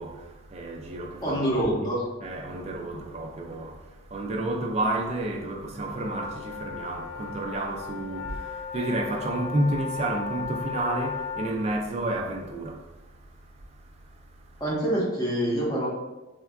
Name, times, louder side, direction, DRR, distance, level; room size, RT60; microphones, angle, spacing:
voice 1, 0.0-1.6 2.2-3.8 4.1-12.8, right 1 dB, 30° right, 0.3 m, -30 dB
voice 2, 1.2-2.0 14.6-15.9, right 1 dB, 20° left, 0.7 m, -26 dB
sound 1, 5.9-11.5, left 6 dB, 80° left, 0.5 m, -36 dB
3.5 x 2.2 x 2.3 m
head